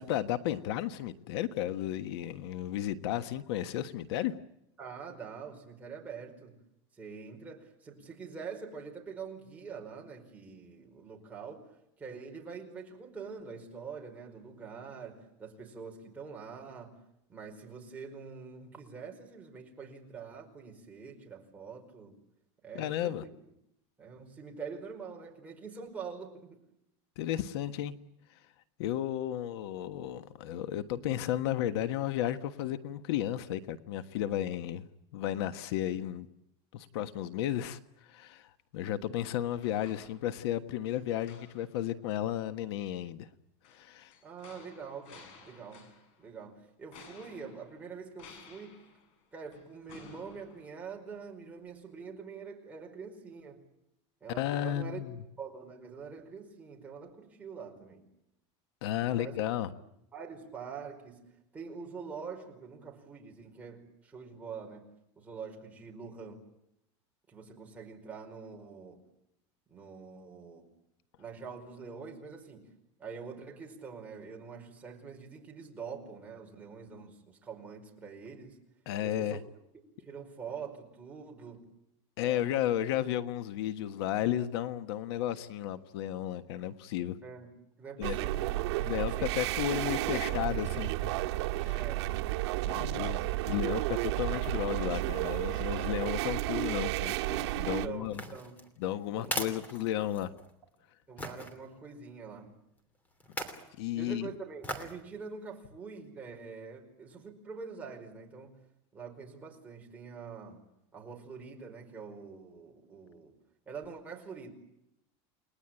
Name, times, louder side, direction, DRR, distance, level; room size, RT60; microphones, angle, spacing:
voice 1, 0.0-4.3 22.7-23.2 27.2-27.9 28.3-28.4 28.8-34.9 35.1-36.3 36.7-43.3 43.7-44.1 54.3-55.1 58.8-59.7 78.8-79.4 82.2-87.2 88.0-88.2 88.8-90.9 91.6-91.8 92.7-98.2 98.8-100.3 103.8-104.3, left 12 dB, 70° left, 1.4 m, -33 dB
voice 2, 4.8-6.6 6.9-17.0 17.3-22.2 22.6-23.3 24.0-26.6 44.2-45.9 46.2-48.8 49.3-53.6 54.2-55.0 55.4-58.1 59.0-59.6 60.1-64.9 65.1-66.4 67.3-69.0 69.7-70.7 71.2-78.6 79.0-79.4 79.9-81.7 82.2-82.5 87.2-87.5 87.8-88.6 89.2-89.4 89.8-90.0 90.5-90.6 91.7-92.1 92.9-93.1 97.6-98.6 99.2-99.5 101.1-102.5 103.9-108.6 108.9-110.6 110.9-113.3 113.7-114.5, right 5 dB, 10° right, 5.0 m, -45 dB
sound 1, 39.2-40.5 40.9-41.8 43.6-46.3 46.9-51.2 51.6-51.7, left 5 dB, 45° left, 6.7 m, -56 dB
sound 2, 88.0-97.9, right 18 dB, 75° right, 1.6 m, -32 dB
sound 3, 98.1-100.5 101.2-101.5 103.2-103.7 104.6-105.0 105.5-105.6, equal, 10° left, 3.0 m, -39 dB
30.0 x 20.5 x 9.0 m
supercardioid pair, 170°, 14 cm